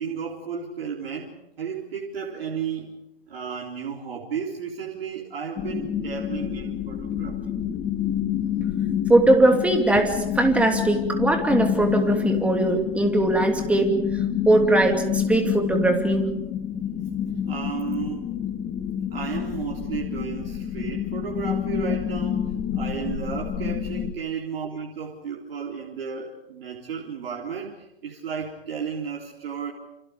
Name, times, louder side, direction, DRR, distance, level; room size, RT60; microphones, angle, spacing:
voice 1, 0.0-3.0 3.3-7.5 17.5-18.4 19.1-29.7, right 6 dB, 60° right, -2 dB, 4.1 m, -33 dB
sound 1, 5.6-24.1, left 9 dB, 15° left, 1.5 m, -28 dB
voice 2, 9.1-13.9 14.5-16.3, right 2 dB, 5° right, 4 dB, 2.7 m, -20 dB
29.5 x 27.5 x 5.2 m, 0.93 s
hypercardioid pair, 135°, 32 cm